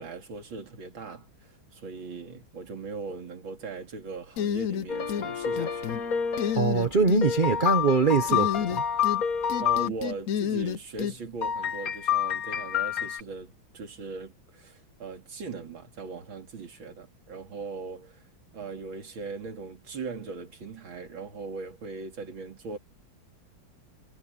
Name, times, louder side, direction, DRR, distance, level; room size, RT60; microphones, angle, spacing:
voice 1, 0.0-5.9 9.6-18.2 18.5-22.8, right 4 dB, 75° right, 3.4 m, -39 dB
sound 1, 4.4-5.3 5.6-6.0 6.4-7.2 8.3-9.2 9.5-11.1, left 9 dB, 85° left, 0.7 m, -29 dB
sound 2, 4.9-6.6 7.2-9.9 11.4-13.2, left 8 dB, 45° left, 1.8 m, -28 dB
voice 2, 6.5-8.8, right 4 dB, 40° right, 0.7 m, -23 dB
omnidirectional pair, 2.2 m